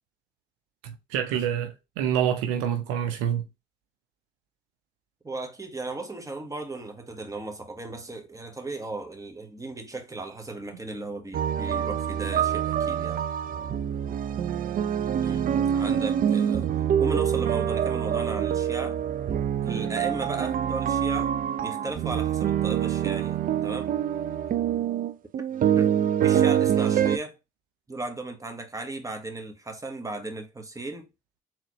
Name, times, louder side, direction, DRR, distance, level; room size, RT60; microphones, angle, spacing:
voice 1, 0.8-3.5, right 9 dB, 80° right, 0.7 m, -27 dB
voice 2, 5.2-13.2 15.2-16.7 17.0-19.0 19.6-21.3 21.6-23.9 25.7-25.9 26.2-27.4 27.9-31.1, right 2 dB, 15° right, 1.2 m, -36 dB
sound 1, 11.3-27.2, right 9 dB, 45° right, 0.4 m, -25 dB
3.9 x 3.1 x 3.0 m
hypercardioid pair, 50°, 20 cm